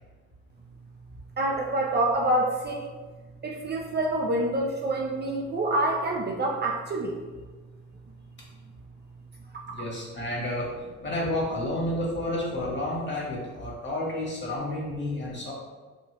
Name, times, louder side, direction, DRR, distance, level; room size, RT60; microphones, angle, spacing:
voice 1, 1.4-2.9 3.4-7.2, right 1 dB, 35° right, 0 dB, 0.4 m, -27 dB
voice 2, 9.7-10.7 11.0-15.5, left 1 dB, 35° left, -5 dB, 1.3 m, -30 dB
3.1 x 2.4 x 3.0 m, 1.4 s
cardioid pair, 90°, 30 cm